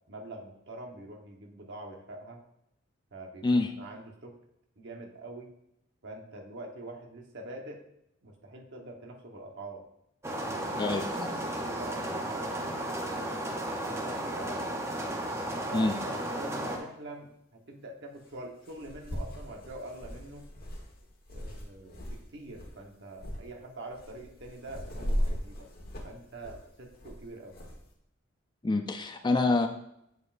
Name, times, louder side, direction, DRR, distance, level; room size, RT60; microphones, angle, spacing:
voice 1, 0.1-2.4 3.1-4.4 4.8-5.6 6.0-7.8 8.2-9.8 10.5-13.5 13.8-14.6 15.4-20.5 21.3-25.7 26.0-27.5, right 2 dB, 60° right, 2 dB, 1.2 m, -45 dB
sound 1, 10.2-16.8, right 1 dB, 15° right, 0.8 m, -34 dB
voice 2, 10.8-11.3 15.7-16.0 28.6-29.7, left 2 dB, 20° left, 7 dB, 0.4 m, -26 dB
sound 2, 18.2-18.3 18.7-22.2 22.5-22.8 23.2-23.4 23.9-27.8, equal, 50° left, 1.3 m, -37 dB
8.0 x 7.1 x 2.6 m, 0.78 s
head